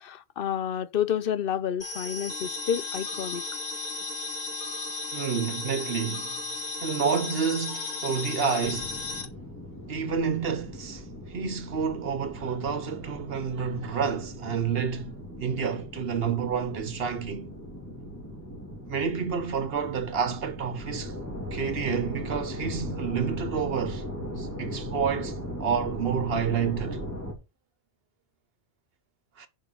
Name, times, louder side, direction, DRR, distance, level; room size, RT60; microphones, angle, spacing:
voice 1, 0.0-3.4, left 9 dB, 60° left, 0.8 m, -29 dB
sound 1, 1.8-9.3, left 3 dB, 40° left, 1.2 m, -35 dB
voice 2, 5.1-6.4 6.8-9.0 9.9-17.5 18.9-21.1 21.5-24.0 24.4-27.0 29.4-29.5, right 6 dB, 65° right, 1.3 m, -29 dB
sound 2, 8.6-27.3, equal, 15° left, 2.8 m, -38 dB
6.8 x 5.5 x 6.3 m
omnidirectional pair, 1.1 m